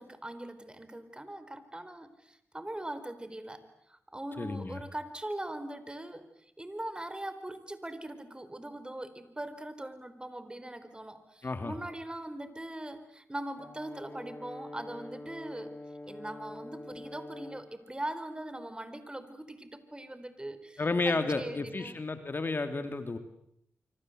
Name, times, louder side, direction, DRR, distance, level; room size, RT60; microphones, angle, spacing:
voice 1, 0.0-15.7 16.0-22.0, right 1 dB, 20° right, 12 dB, 4.4 m, -41 dB
voice 2, 4.4-4.8 11.4-11.7 20.8-23.2, left 3 dB, 45° left, 9 dB, 2.9 m, -31 dB
Brass instrument, 13.6-17.7, left 1 dB, 30° left, 2.2 m, -45 dB
26.0 x 25.5 x 8.0 m, 0.73 s
cardioid pair, 50°, 5 cm